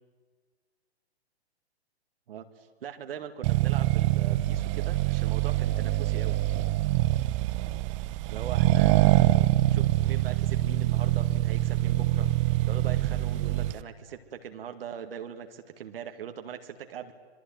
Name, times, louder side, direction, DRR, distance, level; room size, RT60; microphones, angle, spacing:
voice 1, 2.8-6.4 8.3-12.3 12.7-17.1, right 8 dB, 60° right, 6 dB, 2.3 m, -41 dB
Accelerating revving vroom, 3.4-13.8, right 15 dB, 30° right, 0.8 m, -25 dB
26.5 x 22.5 x 9.3 m, 1.5 s
hypercardioid pair, 135°, 33 cm